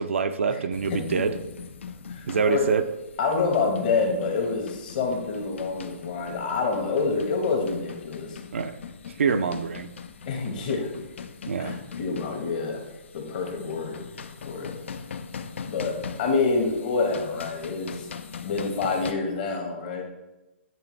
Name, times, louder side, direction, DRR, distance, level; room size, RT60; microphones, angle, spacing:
voice 1, 0.0-1.3 2.3-2.8 8.5-8.8 9.2-9.9 11.5-11.7, right 5 dB, 75° right, 9 dB, 0.5 m, -25 dB
sound 1, 0.7-19.1, left 6 dB, 65° left, 0.5 m, -41 dB
voice 2, 0.9-1.2 2.1-2.7 3.2-8.4 9.3-9.4 10.2-10.9 11.6-12.8 13.1-14.0 14.4-14.7 15.6-18.1 18.4-20.0, left 4 dB, 40° left, 2 dB, 1.3 m, -27 dB
8.9 x 3.3 x 3.2 m, 1.0 s
hypercardioid pair, 155°, 7 cm